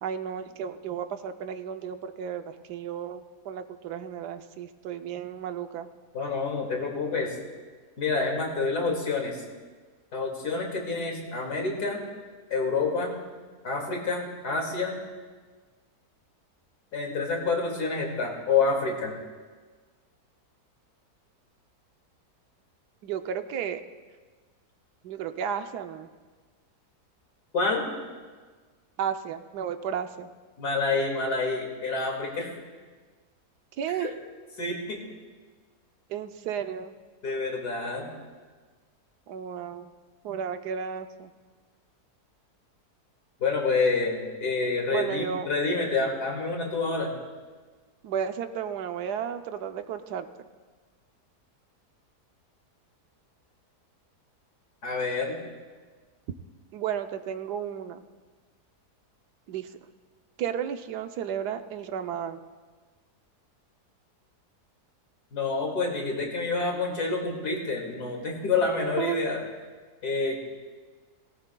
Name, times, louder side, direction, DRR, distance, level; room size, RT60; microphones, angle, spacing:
voice 1, 0.0-5.9 23.0-23.8 25.0-26.1 29.0-30.3 33.8-34.1 36.1-36.9 39.3-39.9 40.2-41.3 44.9-45.5 48.0-50.3 56.7-58.0 59.5-59.7 60.4-62.4 69.0-69.2, right 8 dB, 80° right, 9 dB, 1.3 m, -33 dB
voice 2, 6.1-7.3 8.0-9.4 10.1-12.0 12.5-13.1 13.6-15.0 16.9-19.2 27.5-27.9 30.6-32.5 34.0-34.1 34.6-35.0 37.2-38.1 43.4-47.1 54.8-55.4 65.3-69.4 70.0-70.4, left 4 dB, 80° left, 0 dB, 2.7 m, -28 dB
17.5 x 17.5 x 2.2 m, 1.4 s
omnidirectional pair, 1.7 m